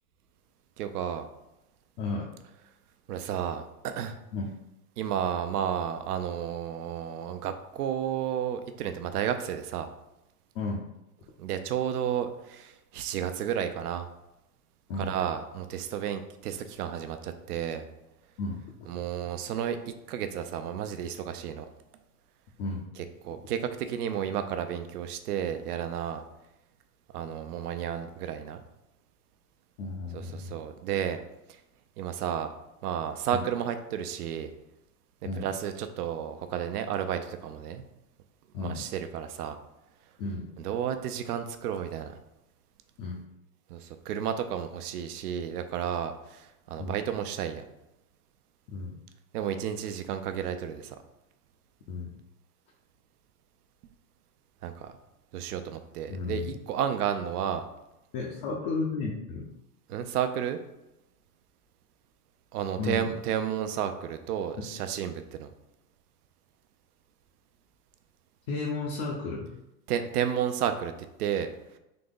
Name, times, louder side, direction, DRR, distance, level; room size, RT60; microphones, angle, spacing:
voice 1, 0.8-1.3 3.1-4.2 5.0-9.9 11.4-14.1 15.0-17.8 18.9-21.7 23.2-26.2 27.1-28.6 30.1-31.2 32.0-32.5 32.8-34.5 35.4-37.8 38.6-39.6 40.6-42.2 43.7-47.7 49.3-51.0 54.6-54.9 55.3-57.6 59.9-60.6 62.5-65.5 69.9-70.9 71.2-71.5, right 9 dB, 70° right, 9 dB, 0.6 m, -32 dB
voice 2, 2.0-2.3 4.3-4.5 10.5-10.8 14.9-15.1 18.4-18.6 22.6-22.9 29.8-30.6 33.3-33.4 35.2-35.5 38.5-38.8 40.2-40.5 43.0-43.2 46.8-47.0 48.7-48.9 51.9-52.1 56.1-56.5 58.1-59.5 62.8-63.0 68.5-69.5, left 3 dB, 35° left, -3 dB, 0.7 m, -33 dB
3.9 x 2.9 x 3.7 m, 0.91 s
hypercardioid pair, 125°, 48 cm